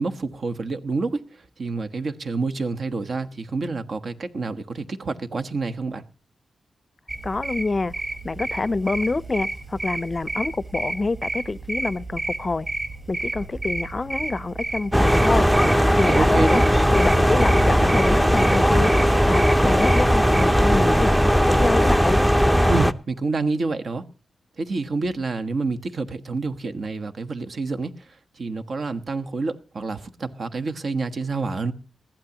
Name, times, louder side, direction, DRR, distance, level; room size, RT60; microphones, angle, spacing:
voice 1, 0.0-6.0 16.0-16.6 22.7-24.0 24.6-31.7, right 3 dB, 55° right, 1.2 m, -28 dB
sound 1, 7.1-20.5, right 2 dB, 25° right, 4.5 m, -31 dB
voice 2, 7.2-7.9 8.2-12.7 13.1-15.5 16.0-16.6 16.9-18.9 19.3-22.2, left 3 dB, 35° left, 0.6 m, -26 dB
sound 2, 14.9-22.9, equal, 5° right, 0.6 m, -18 dB
20.5 x 15.0 x 2.9 m
cardioid pair, 90°, 0 cm